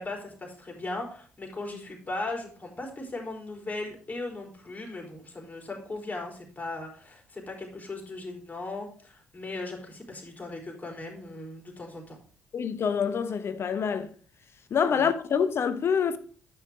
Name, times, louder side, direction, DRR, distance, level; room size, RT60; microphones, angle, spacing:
voice 1, 0.0-12.2 14.9-15.1, left 2 dB, 30° left, 4.0 m, -38 dB
voice 2, 12.5-14.1 14.7-16.2, left 7 dB, 50° left, 1.0 m, -26 dB
9.7 x 6.0 x 4.9 m
hypercardioid pair, 50°, 5 cm